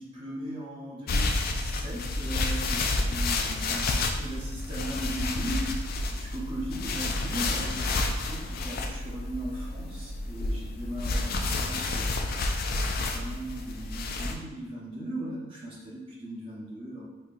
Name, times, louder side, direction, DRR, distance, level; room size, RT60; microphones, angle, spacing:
voice 1, 0.0-5.7 6.1-12.3 12.8-17.0, right 1 dB, 25° right, -6 dB, 0.7 m, -38 dB
sound 1, 1.1-14.3, left 2 dB, 45° left, 0.3 m, -30 dB
4.2 x 2.7 x 2.4 m, 1.1 s
head